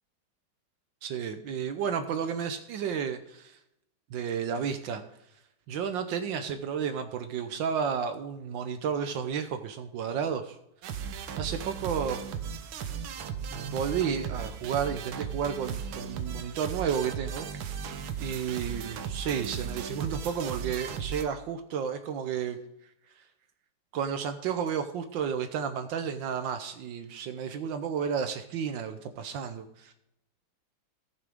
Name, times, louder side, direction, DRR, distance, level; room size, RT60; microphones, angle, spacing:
voice 1, 1.0-3.6 4.1-5.0 5.7-10.6 11.4-12.2 13.5-17.5 18.2-22.6 23.9-29.9, right 7 dB, 75° right, 8 dB, 1.4 m, -32 dB
sound 1, 10.8-21.2, right 7 dB, 90° right, 1.6 m, -36 dB
14.5 x 8.5 x 3.6 m, 0.82 s
omnidirectional pair, 2.1 m